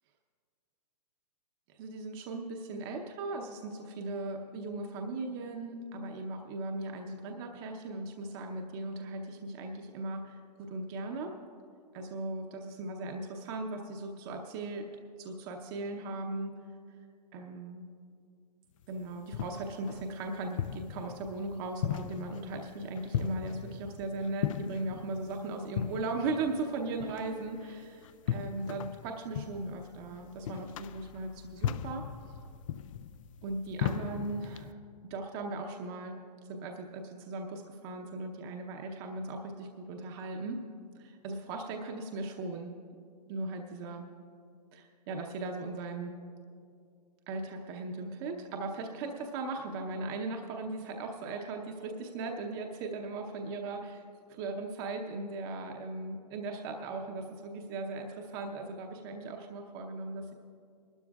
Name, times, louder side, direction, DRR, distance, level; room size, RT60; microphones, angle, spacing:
voice 1, 1.7-11.3 11.9-14.9 15.2-16.5 17.3-17.9 18.9-32.0 33.4-34.8 35.0-36.2 36.5-40.6 40.9-42.7 43.3-44.1 44.7-46.1 47.3-54.0 54.3-60.3, right 2 dB, 35° right, 2 dB, 0.8 m, -38 dB
sound 1, 18.8-34.7, left 9 dB, 55° left, 0.4 m, -38 dB
22.5 x 12.5 x 2.4 m, 2.4 s
hypercardioid pair, 135°, 20 cm